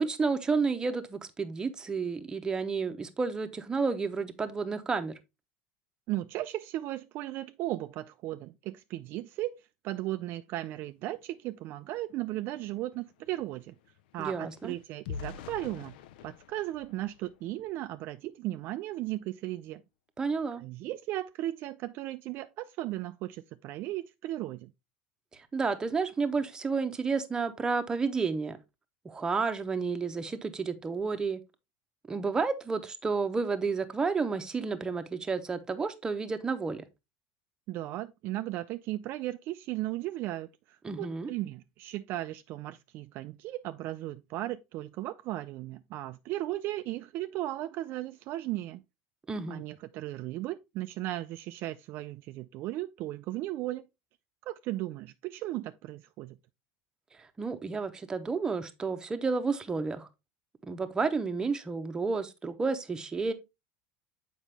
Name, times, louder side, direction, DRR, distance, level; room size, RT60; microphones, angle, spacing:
voice 1, 0.0-5.1 14.2-14.7 20.2-20.6 25.3-28.6 29.0-31.4 32.1-36.8 40.8-41.3 49.3-49.6 57.4-60.1 60.6-63.3, right 4 dB, 15° right, 0.8 m, -31 dB
voice 2, 6.1-13.7 14.1-16.0 16.2-19.8 20.6-24.7 37.7-48.8 49.5-53.9 54.5-56.4, right 15 dB, 50° right, 0.3 m, -36 dB
sound 1, 12.1-12.2 12.5-18.0 18.5-18.7 19.0-19.3, left 7 dB, 90° left, 0.5 m, -47 dB
7.2 x 5.0 x 3.3 m
supercardioid pair, 140°, 5 cm